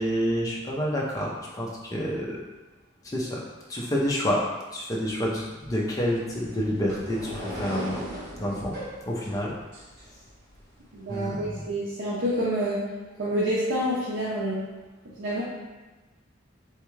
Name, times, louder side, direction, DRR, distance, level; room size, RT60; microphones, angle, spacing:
voice 1, 0.0-2.4 3.0-3.4 3.7-4.4 4.7-8.0 8.4-8.7 9.1-9.5 11.1-11.7, equal, 15° left, -4 dB, 0.5 m, -28 dB
sound 1, 5.9-10.6, equal, 55° right, 1.1 m, -39 dB
voice 2, 10.9-12.8 13.2-14.6 15.2-15.4, equal, 80° right, -8 dB, 0.6 m, -27 dB
3.5 x 2.2 x 3.1 m, 1.2 s
head